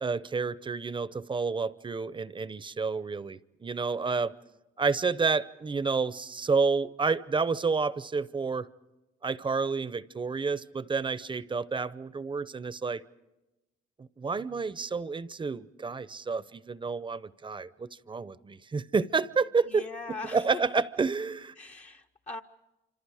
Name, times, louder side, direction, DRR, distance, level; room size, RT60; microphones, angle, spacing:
voice 1, 0.0-4.3 4.8-8.7 9.2-13.0 14.0-19.8 20.1-21.5, right 4 dB, 25° right, 17 dB, 0.7 m, -30 dB
voice 2, 19.7-20.6 21.6-22.4, left 3 dB, 35° left, 3 dB, 0.7 m, -40 dB
26.5 x 26.5 x 4.9 m, 1.0 s
cardioid pair, 90°, 20 cm